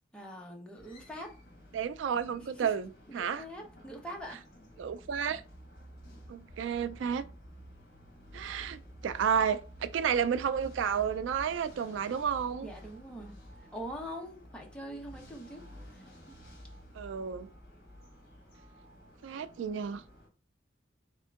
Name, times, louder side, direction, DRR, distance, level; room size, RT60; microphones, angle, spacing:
voice 1, 0.1-1.3 2.4-2.7 3.1-4.4 12.6-13.4 13.7-15.6 15.9-16.4, equal, 5° left, 0.9 m, -43 dB
sound 1, 0.8-20.3, left 1 dB, 50° left, 1.8 m, -53 dB
voice 2, 1.7-2.9 3.1-3.4 4.8-5.4 6.3-7.2 8.3-12.7 16.9-17.5 19.2-20.0, right 7 dB, 80° right, 0.3 m, -31 dB
sound 2, 4.8-12.5, right 1 dB, 55° right, 0.7 m, -53 dB
3.6 x 3.5 x 3.6 m
head